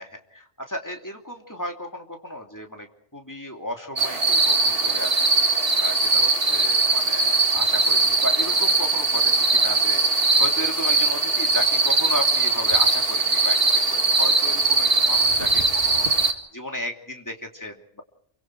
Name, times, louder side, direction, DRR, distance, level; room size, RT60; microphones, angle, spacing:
voice 1, 0.0-2.9 3.1-5.2 5.5-13.6 13.9-18.0, equal, 15° left, 3 dB, 2.9 m, -34 dB
sound 1, 4.0-16.3, right 3 dB, 55° right, 2.3 m, -20 dB
28.0 x 24.5 x 4.7 m, 0.67 s
omnidirectional pair, 1.2 m